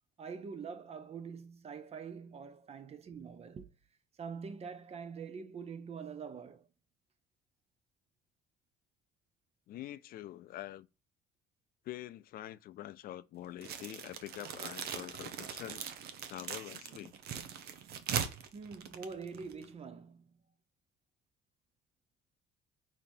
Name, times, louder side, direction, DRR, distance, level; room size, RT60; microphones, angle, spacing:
voice 1, 0.2-3.7 4.1-6.7 18.5-20.4, right 5 dB, 35° right, 0.7 m, -45 dB
voice 2, 9.7-10.9 11.8-15.8 16.3-17.1, left 13 dB, 60° left, 0.4 m, -45 dB
sound 1, 13.6-19.7, right 8 dB, 70° right, 0.8 m, -40 dB
4.8 x 3.8 x 2.6 m
cardioid pair, 110°, 17 cm